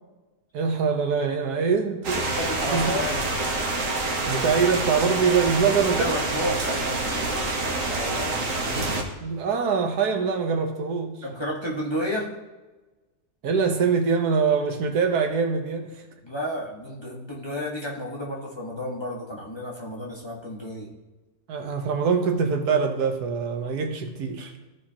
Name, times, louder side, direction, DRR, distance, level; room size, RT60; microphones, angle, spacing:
voice 1, 0.5-2.2 2.7-2.9 4.3-6.1 9.2-11.2 13.4-16.0 21.5-24.5, right 5 dB, 85° right, 5 dB, 1.5 m, -24 dB
sound 1, 2.0-9.0, right 2 dB, 60° right, 1.5 m, -27 dB
voice 2, 2.4-3.3 5.9-8.5 11.2-12.3 13.8-13.9 16.2-20.9, left 1 dB, 20° left, -4 dB, 1.2 m, -32 dB
15.0 x 5.0 x 2.9 m, 1.2 s
omnidirectional pair, 1.6 m